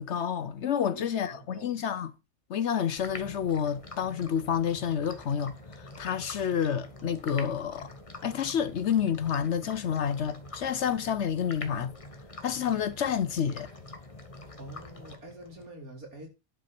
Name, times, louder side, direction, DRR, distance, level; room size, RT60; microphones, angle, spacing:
voice 1, 0.0-2.1 2.5-7.9 8.2-11.9 12.4-13.7, left 8 dB, 60° left, 0.9 m, -29 dB
voice 2, 0.9-1.8 14.6-16.3, right 1 dB, 85° right, 4.4 m, -46 dB
sound 1, 3.0-15.7, left 2 dB, 25° left, 1.3 m, -46 dB
11.0 x 6.1 x 6.0 m
omnidirectional pair, 1.5 m